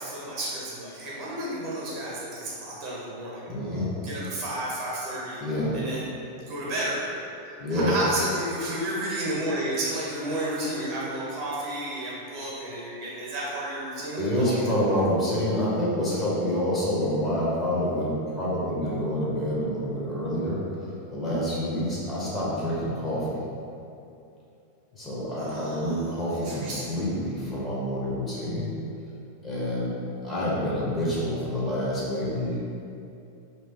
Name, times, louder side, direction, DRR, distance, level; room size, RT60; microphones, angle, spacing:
voice 1, 0.0-3.5 4.0-5.4 5.7-6.1 6.5-7.3 7.7-15.0 25.4-26.0 26.3-26.9, right 1 dB, 40° right, -6 dB, 1.0 m, -32 dB
voice 2, 3.5-3.9 5.4-5.7 7.6-8.0 14.2-23.4 24.9-28.8 29.4-29.9 30.2-32.6, equal, 15° left, -7 dB, 0.9 m, -27 dB
2.8 x 2.7 x 3.6 m, 2.7 s
figure-of-eight pair, 90°, 0 cm